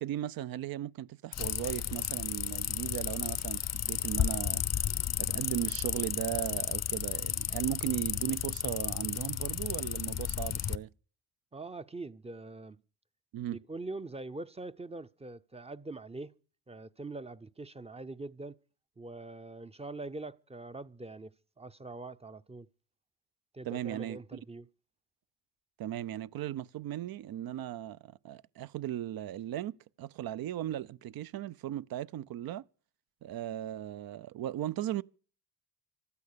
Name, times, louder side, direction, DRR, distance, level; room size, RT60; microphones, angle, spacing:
voice 1, 0.0-4.6 5.2-10.9 13.3-13.6 23.6-24.2 25.8-32.6 33.2-35.0, right 12 dB, 55° right, 0.7 m, -37 dB
sound 1, 1.3-10.8, left 9 dB, 40° left, 0.7 m, -33 dB
voice 2, 11.5-12.8 13.5-16.3 16.7-18.5 19.0-22.7 23.5-24.7, right 2 dB, 15° right, 0.7 m, -43 dB
15.0 x 12.5 x 6.8 m
supercardioid pair, 70°, 42 cm